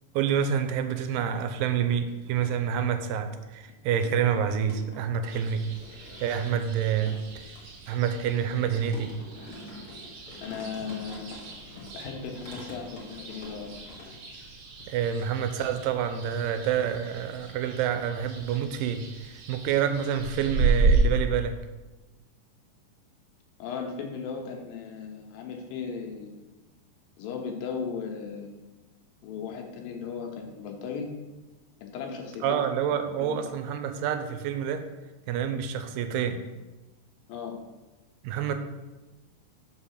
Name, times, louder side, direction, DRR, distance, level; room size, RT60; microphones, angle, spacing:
voice 1, 0.1-5.6 6.2-7.2 7.9-9.1 14.9-21.6 32.4-34.9 35.3-36.5 38.2-38.5, right 8 dB, 90° right, 8 dB, 2.3 m, -28 dB
sound 1, 1.9-2.9 3.3-14.5 14.8-15.4, left 2 dB, 35° left, 1.5 m, -47 dB
sound 2, 5.3-21.0, right 4 dB, 65° right, 1.9 m, -33 dB
voice 2, 10.4-11.4 11.9-14.0 23.6-26.4 27.2-28.7 29.2-31.1 31.8-32.6 33.2-33.4 37.3-37.6, left 6 dB, 90° left, 2 dB, 2.8 m, -37 dB
5.3 x 5.3 x 6.5 m, 1.1 s
omnidirectional pair, 3.9 m